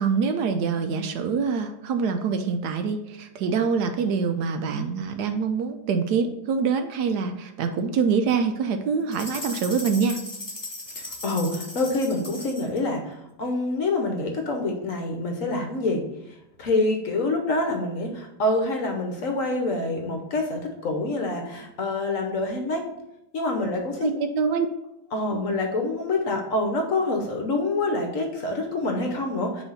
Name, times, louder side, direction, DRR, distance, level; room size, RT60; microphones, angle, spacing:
voice 1, 0.0-10.2 24.0-24.7 25.3-25.4, right 5 dB, 70° right, 7 dB, 1.1 m, -25 dB
sound 1, 9.1-12.8, left 1 dB, 15° left, 0.9 m, -37 dB
voice 2, 11.0-22.9 23.3-24.1 25.1-29.6, left 2 dB, 55° left, 3 dB, 1.1 m, -26 dB
5.9 x 3.2 x 5.6 m, 0.89 s
omnidirectional pair, 1.9 m